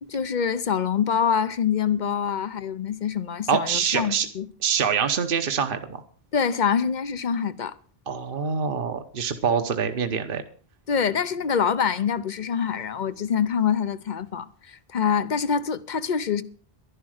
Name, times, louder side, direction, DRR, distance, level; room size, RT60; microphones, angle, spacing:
voice 1, 0.0-4.5 6.3-7.7 10.9-16.4, left 7 dB, 50° left, 0.8 m, -25 dB
voice 2, 3.5-4.3 4.6-6.0 8.1-10.4, right 6 dB, 60° right, 1.2 m, -25 dB
11.5 x 11.5 x 6.4 m
omnidirectional pair, 1.0 m